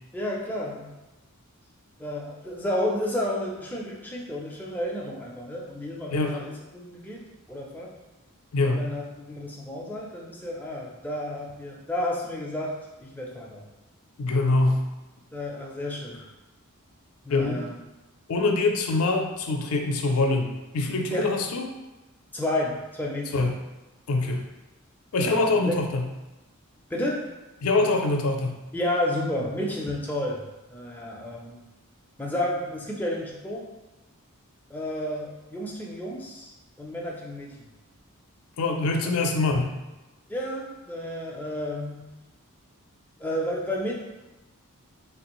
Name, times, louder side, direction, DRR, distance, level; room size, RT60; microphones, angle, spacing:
voice 1, 0.1-0.9 2.0-7.9 8.7-13.6 15.3-16.2 17.2-17.8 21.1-21.3 22.3-23.5 25.2-25.8 26.9-27.3 28.7-30.4 30.7-31.6 32.2-33.7 34.7-36.5 36.8-37.7 39.0-39.1 40.3-42.1 43.2-43.9, left 1 dB, 10° left, -3 dB, 0.4 m, -31 dB
voice 2, 8.5-8.8 14.2-14.8 17.3-17.6 18.3-21.7 23.3-23.5 24.1-24.4 25.1-26.0 27.6-28.6 38.6-39.7, left 3 dB, 75° left, 3 dB, 0.4 m, -24 dB
3.3 x 2.4 x 2.9 m, 1.1 s
head